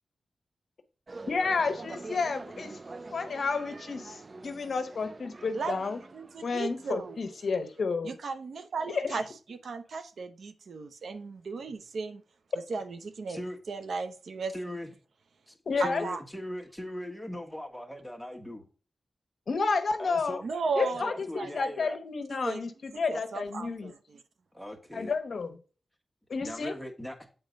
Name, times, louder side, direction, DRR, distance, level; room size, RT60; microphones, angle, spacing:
sound 1, 1.1-7.6, right 3 dB, 40° right, 0.5 m, -45 dB
voice 1, 1.3-2.8 3.1-6.0 6.4-8.1 8.9-9.2 15.7-16.0 19.5-20.4 20.8-23.9 24.9-25.6 26.3-26.7, left 4 dB, 70° left, 0.9 m, -31 dB
voice 2, 6.1-7.2 8.0-9.2 9.5-12.2 12.7-13.4 13.7-14.5 15.8-16.2 20.4-21.1 21.3-21.5 22.3-22.6 23.1-24.2, right 4 dB, 80° right, 0.8 m, -35 dB
voice 3, 14.5-14.9 15.5-15.6 15.8-18.6 20.0-22.0 24.5-25.1 26.4-27.2, left 1 dB, ahead, 1.5 m, -39 dB
8.1 x 3.9 x 5.2 m
wide cardioid pair, 90°, 0 cm